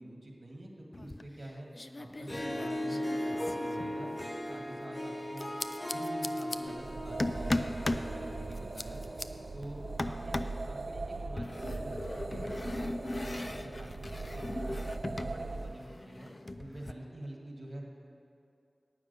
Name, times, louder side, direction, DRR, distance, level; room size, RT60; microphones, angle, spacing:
voice 1, 0.0-1.7 2.0-4.1 4.5-5.5 5.9-9.0 9.5-14.8 15.1-17.8, right 1 dB, 65° right, -1 dB, 1.8 m, -47 dB
sound 1, 0.9-1.5 1.7-4.4 5.4-6.6 7.2-8.1 8.5-9.3 10.0-10.6 11.4-15.4 15.6-16.9, left 1 dB, 40° left, 0.4 m, -37 dB
Harp, 2.1-9.6, left 1 dB, 20° left, 1.0 m, -38 dB
sound 2, 6.6-15.8, right 3 dB, 90° right, 0.4 m, -40 dB
9.7 x 6.1 x 8.2 m, 2.5 s
wide cardioid pair, 70°, 0 cm